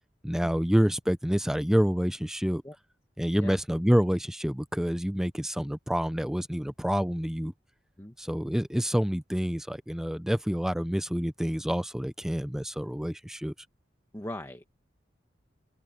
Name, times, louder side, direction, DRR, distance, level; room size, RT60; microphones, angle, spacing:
voice 1, 0.2-2.6 3.2-7.5 8.2-13.5, equal, 5° right, 0.5 m, -27 dB
voice 2, 14.1-14.7, left 1 dB, 15° left, 1.4 m, -39 dB
open air
head